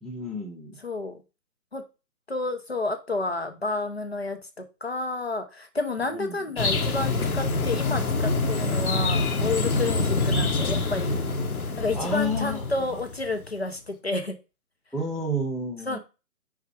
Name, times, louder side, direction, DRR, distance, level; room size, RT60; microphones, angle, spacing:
voice 1, 0.0-0.7 6.1-6.4 9.8-10.1 11.9-12.9 14.9-16.0, left 1 dB, ahead, 0.5 m, -31 dB
voice 2, 0.8-1.2 1.7-1.8 2.3-11.1 11.8-14.4 15.9-16.0, left 2 dB, 40° left, 0.9 m, -30 dB
sound 1, 6.6-13.4, left 3 dB, 60° left, 1.2 m, -26 dB
4.8 x 4.7 x 4.6 m
hypercardioid pair, 180°, 48 cm